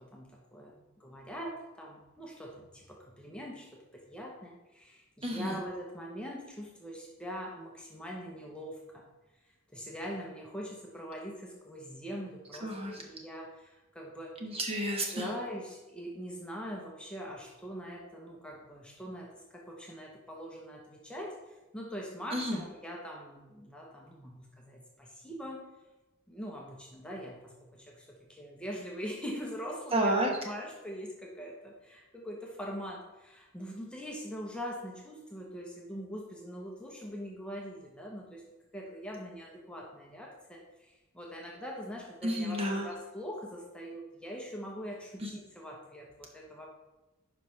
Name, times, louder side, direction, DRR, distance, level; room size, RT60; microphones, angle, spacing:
voice 1, 0.0-9.1 9.7-14.3 15.1-25.6 26.3-30.1 30.4-38.4 38.7-46.7, equal, 5° left, -2 dB, 0.9 m, -42 dB
voice 2, 5.2-5.6 12.6-13.0 14.4-15.3 22.3-22.6 29.9-30.3 42.2-42.9 45.2-45.3, right 1 dB, 30° right, 1 dB, 1.2 m, -31 dB
10.0 x 5.2 x 3.3 m, 1.1 s
head